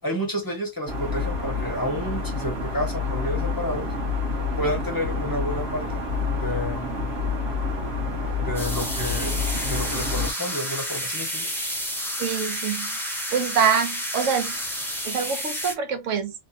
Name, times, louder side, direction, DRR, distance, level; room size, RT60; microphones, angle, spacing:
voice 1, 0.0-3.9 4.6-6.0 6.3-6.9 8.4-9.4 9.6-11.5, equal, 20° left, 0.8 m, -30 dB
sound 1, 0.9-10.3, left 3 dB, 55° right, 1.2 m, -28 dB
sound 2, 8.5-15.7, equal, 5° left, 0.4 m, -30 dB
voice 2, 12.2-12.9 13.3-14.6 15.0-16.3, right 7 dB, 75° right, 1.0 m, -25 dB
3.2 x 2.2 x 2.6 m
omnidirectional pair, 1.3 m